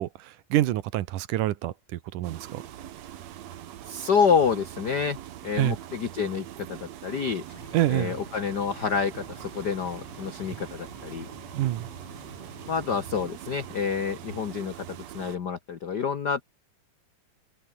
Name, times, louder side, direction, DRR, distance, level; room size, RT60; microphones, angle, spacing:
voice 1, 0.0-2.6 5.6-5.8 7.7-8.2 11.5-11.9, right 14 dB, 80° right, 2.6 m, -27 dB
sound 1, 2.2-15.4, right 11 dB, 60° right, 2.2 m, -43 dB
voice 2, 3.8-5.2 5.4-7.4 7.9-11.3 12.7-16.4, left 6 dB, 70° left, 0.9 m, -28 dB
sound 2, 7.5-13.3, left 3 dB, 45° left, 6.3 m, -49 dB
omnidirectional pair, 3.7 m